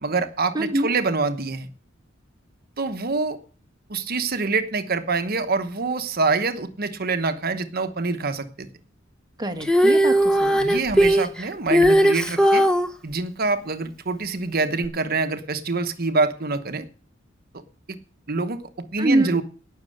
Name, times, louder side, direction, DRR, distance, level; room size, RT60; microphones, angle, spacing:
voice 1, 0.0-1.7 2.8-3.4 3.9-8.7 10.6-12.6 13.0-16.9 17.9-18.0 18.3-18.6 18.9-19.4, right 3 dB, 50° right, 9 dB, 1.1 m, -25 dB
voice 2, 0.5-0.9 9.4-10.7 19.0-19.4, right 1 dB, 20° right, 5 dB, 1.7 m, -24 dB
Female singing, 9.6-12.9 14.8-14.9, equal, 5° left, 1.2 m, -18 dB
18.0 x 6.4 x 6.5 m, 0.40 s
head